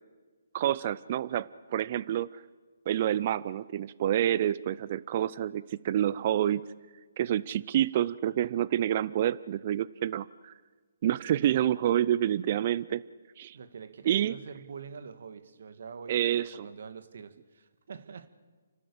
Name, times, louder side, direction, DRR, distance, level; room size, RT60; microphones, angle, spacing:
voice 1, 0.5-2.4 2.9-6.7 7.2-10.5 11.0-13.0 13.4-13.6 14.0-14.3 16.1-16.7, right 11 dB, 40° right, 19 dB, 0.5 m, -28 dB
voice 2, 13.5-18.3, right 6 dB, 65° right, 11 dB, 1.8 m, -45 dB
30.0 x 12.5 x 8.4 m, 1.4 s
hypercardioid pair, 145°, 0 cm